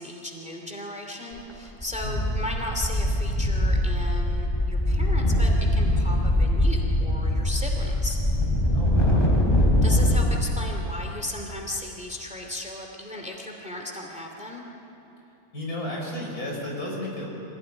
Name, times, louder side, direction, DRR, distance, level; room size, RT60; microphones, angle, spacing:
voice 1, 0.0-8.2 9.8-14.7, left 1 dB, 5° right, 1 dB, 2.6 m, -36 dB
sound 1, 1.3-1.5 1.8-10.3, left 1 dB, 15° left, 3.8 m, -22 dB
voice 2, 2.0-2.3 8.7-9.4 15.5-17.3, left 1 dB, 80° left, -2 dB, 5.8 m, -33 dB
25.5 x 17.0 x 9.9 m, 2.9 s
omnidirectional pair, 1.6 m